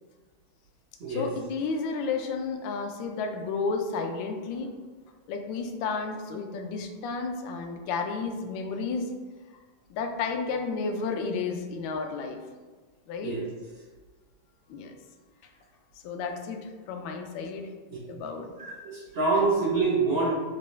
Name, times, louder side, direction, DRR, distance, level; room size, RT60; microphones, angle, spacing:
voice 1, 1.1-4.8 5.3-9.1 9.9-12.4 13.1-13.4 14.7-14.9 16.0-17.7 18.1-18.5, left 4 dB, 75° left, 4 dB, 1.2 m, -32 dB
voice 2, 18.6-20.3, right 3 dB, 70° right, -5 dB, 0.5 m, -26 dB
5.9 x 2.2 x 3.1 m, 1.4 s
omnidirectional pair, 2.3 m